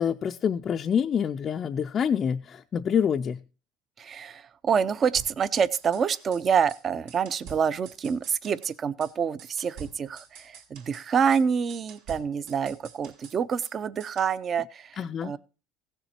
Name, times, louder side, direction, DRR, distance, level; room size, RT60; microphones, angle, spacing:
voice 1, 0.0-3.4 15.0-15.3, left 7 dB, 30° left, 0.5 m, -26 dB
voice 2, 4.0-15.4, right 7 dB, 30° right, 0.6 m, -27 dB
sound 1, 5.2-6.4 6.7-6.8 7.1-8.8 9.0-9.1 9.4-11.1 11.3-11.4 11.7-13.7 14.0-14.3, right 6 dB, 80° right, 2.9 m, -47 dB
16.0 x 7.0 x 4.3 m
cardioid pair, 135°, 0 cm